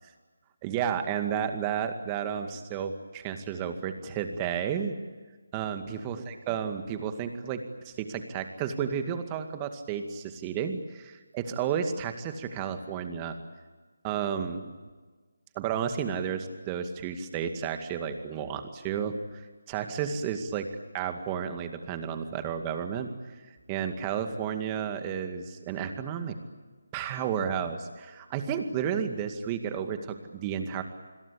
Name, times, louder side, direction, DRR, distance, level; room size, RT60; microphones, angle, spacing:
voice 1, 0.6-4.9 5.5-13.4 14.0-14.7 15.6-20.7 20.9-23.1 23.5-26.4 26.9-30.8, right 8 dB, 20° right, 7 dB, 2.1 m, -32 dB
27.5 x 21.5 x 8.6 m, 1.4 s
figure-of-eight pair, 160°, 0 cm